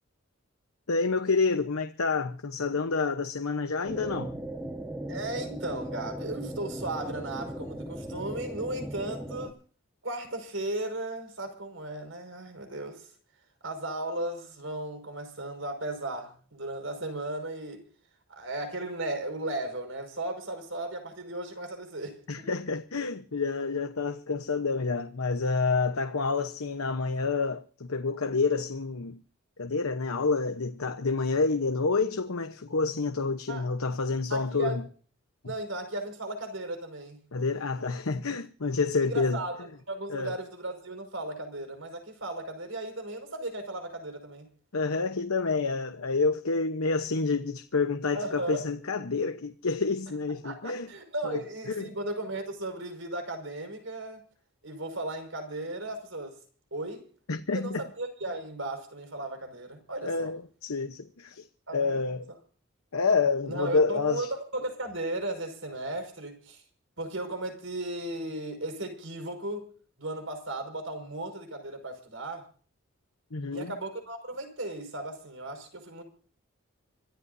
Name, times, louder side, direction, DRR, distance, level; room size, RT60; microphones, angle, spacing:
voice 1, 0.9-4.3 22.3-29.2 29.6-34.8 35.4-35.5 37.3-39.4 40.1-40.3 44.7-50.9 51.2-51.9 57.3-57.8 60.0-61.5 61.7-62.3 62.9-64.3 73.3-73.7, left 4 dB, 85° left, 1.0 m, -28 dB
sound 1, 3.8-9.5, right 1 dB, 10° right, 1.4 m, -38 dB
voice 2, 5.1-9.5 10.0-13.1 13.6-17.9 18.3-22.5 33.5-33.6 34.3-34.8 35.5-37.2 39.0-44.5 48.1-48.6 50.4-54.2 54.6-56.3 56.7-57.1 57.5-60.3 61.7-61.9 63.5-66.6 67.0-69.7 70.0-72.5 73.5-76.0, right 1 dB, 65° right, 5.6 m, -36 dB
26.0 x 14.0 x 2.7 m
head